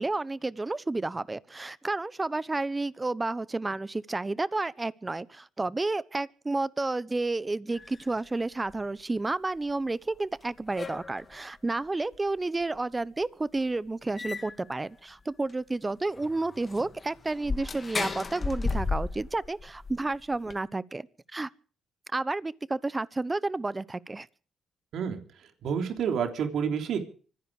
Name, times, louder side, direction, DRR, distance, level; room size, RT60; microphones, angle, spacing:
voice 1, 0.0-21.1 21.3-21.5 22.1-24.3, right 2 dB, 25° right, 1.0 m, -31 dB
sound 1, 7.7-8.3 8.7-8.8 10.1-10.2 10.4-11.4 12.1-12.2 12.6-12.7 13.2-13.3 13.6-13.7 14.1-14.7 15.2-15.3 15.5-15.6 16.1-20.6, left 4 dB, 40° left, 2.1 m, -35 dB
voice 2, 24.9-27.0, right 7 dB, 70° right, 3.4 m, -30 dB
25.0 x 10.5 x 5.0 m
supercardioid pair, 65°, 0 cm